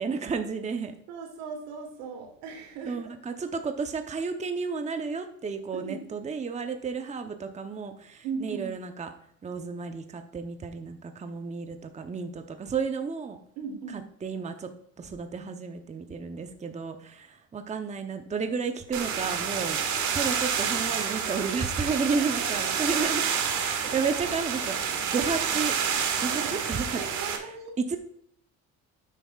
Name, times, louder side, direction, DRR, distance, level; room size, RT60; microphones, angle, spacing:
voice 1, 0.0-0.9 2.8-9.1 9.4-13.4 14.2-14.7 15.0-19.8 20.1-23.2 23.5-25.7 26.2-27.0 27.8-28.0, right 5 dB, 20° right, 6 dB, 0.8 m, -32 dB
voice 2, 1.1-3.1 5.7-6.0 8.2-8.7 13.6-14.1 21.9-22.9 23.8-24.1 26.3-26.5 27.0-28.0, right 5 dB, 85° right, 3 dB, 2.8 m, -38 dB
sound 1, 18.9-27.4, right 7 dB, 55° right, 1.8 m, -29 dB
10.0 x 8.3 x 2.4 m, 0.69 s
cardioid pair, 100°, 34 cm